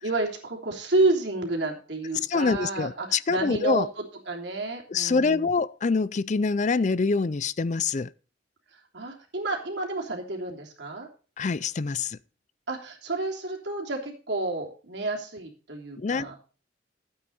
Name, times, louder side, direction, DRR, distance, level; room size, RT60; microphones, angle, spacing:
voice 1, 0.0-5.5 8.9-11.1 12.7-16.3, right 2 dB, 65° right, 3.1 m, -30 dB
voice 2, 2.3-3.9 4.9-8.1 11.4-12.2 16.0-16.3, left 4 dB, 40° left, 0.4 m, -25 dB
12.5 x 8.7 x 4.1 m
head